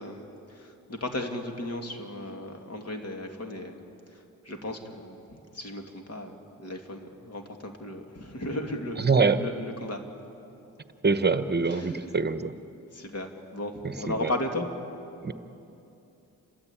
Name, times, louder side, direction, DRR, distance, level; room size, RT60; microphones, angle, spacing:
voice 1, 0.0-3.8 4.1-10.0 11.7-12.1 12.9-14.7, left 1 dB, 45° left, 4 dB, 2.6 m, -36 dB
voice 2, 9.0-9.4 11.0-12.5 13.8-14.3 15.2-15.3, right 4 dB, 30° right, 11 dB, 1.1 m, -24 dB
30.0 x 13.0 x 8.7 m, 2.8 s
cardioid pair, 75°, 34 cm